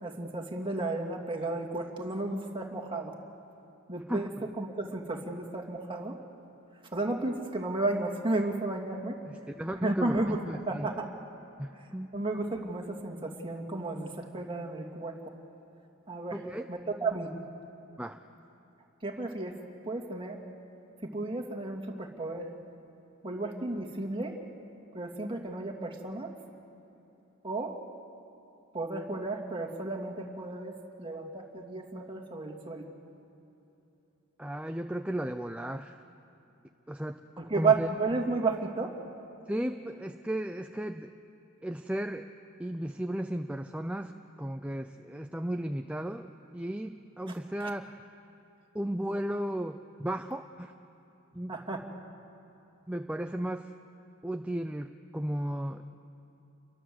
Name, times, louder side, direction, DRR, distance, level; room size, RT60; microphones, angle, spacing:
voice 1, 0.0-3.1 3.9-4.3 4.6-6.2 6.9-9.2 9.8-10.4 10.7-11.1 12.1-15.1 16.1-16.4 16.7-17.3 19.0-19.6 19.8-20.4 21.1-22.5 23.2-24.4 24.9-26.3 27.4-27.7 28.7-32.9 37.4-38.9 47.3-47.4 51.5-51.8, right 3 dB, 25° right, 2 dB, 2.5 m, -33 dB
voice 2, 9.3-10.9 11.6-12.1 16.3-16.7 18.0-18.2 34.4-36.0 36.9-37.2 37.5-37.9 39.5-41.1 41.6-42.3 42.6-44.1 44.4-48.0 48.7-50.7 51.3-51.6 52.9-53.7 54.2-55.8, right 1 dB, 5° right, 6 dB, 0.5 m, -35 dB
28.5 x 23.0 x 7.9 m, 2.9 s
head